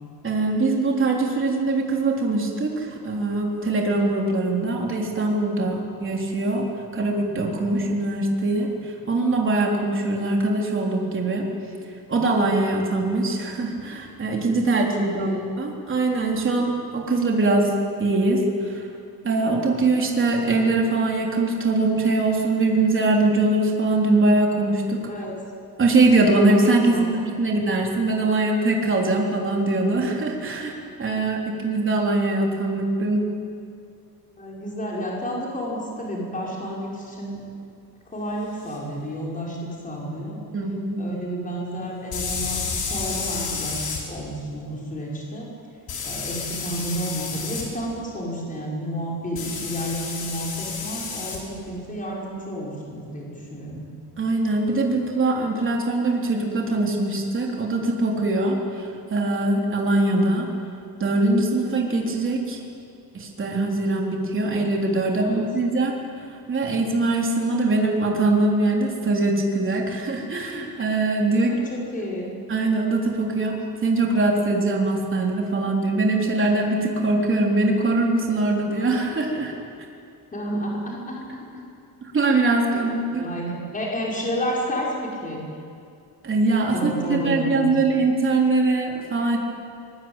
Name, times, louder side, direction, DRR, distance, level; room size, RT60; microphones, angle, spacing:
voice 1, 0.2-6.6 6.9-11.4 12.1-17.7 18.0-18.9 19.2-25.0 25.8-33.3 40.5-41.0 54.2-60.5 61.0-62.6 63.1-65.9 66.5-71.7 72.5-73.5 73.8-79.5 82.0-83.2 86.2-86.8 87.1-89.4, right 2 dB, 30° right, 0 dB, 3.7 m, -22 dB
voice 2, 34.4-37.4 38.1-40.4 41.0-45.5 46.0-53.8 65.1-65.4 71.4-72.3 80.3-81.6 82.7-85.4 86.7-87.7, equal, 20° left, -3 dB, 5.8 m, -31 dB
sound 1, 38.7-38.8 42.1-44.0 45.9-47.7 49.4-51.4, left 5 dB, 65° left, 5.6 m, -30 dB
25.0 x 22.0 x 9.1 m, 2.4 s
cardioid pair, 170°, 39 cm